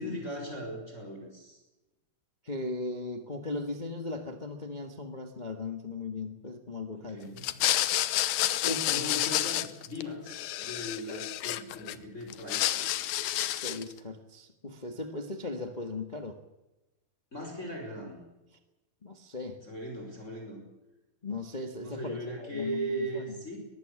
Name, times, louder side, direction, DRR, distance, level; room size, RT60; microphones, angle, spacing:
voice 1, 0.0-1.6 6.9-7.5 8.9-13.1 17.3-18.2 19.6-20.6 21.8-23.6, equal, 20° left, 2 dB, 5.3 m, -38 dB
voice 2, 2.4-7.3 8.6-8.9 13.5-16.4 19.0-19.6 21.2-23.3, left 3 dB, 55° left, 5 dB, 0.5 m, -38 dB
sound 1, 7.4-10.0 10.3-11.9 12.3-13.9, left 14 dB, 80° left, 2.6 m, -29 dB
22.5 x 14.5 x 9.8 m, 1.0 s
omnidirectional pair, 4.2 m